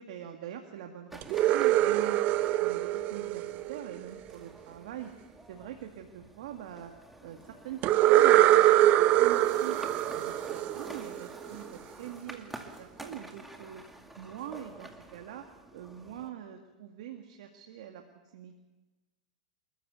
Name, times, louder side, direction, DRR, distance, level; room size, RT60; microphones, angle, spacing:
voice 1, 0.0-2.3 2.6-5.1 5.5-6.9 7.2-9.8 10.1-13.8 14.2-18.0 18.3-18.6, right 10 dB, 65° right, 4 dB, 2.0 m, -43 dB
sound 1, 1.1-16.3, right 1 dB, 5° right, 2.3 m, -48 dB
sound 2, 1.2-4.2 7.8-11.5, right 14 dB, 40° right, 0.9 m, -24 dB
26.5 x 14.0 x 7.0 m, 1.2 s
hypercardioid pair, 115°, 4 cm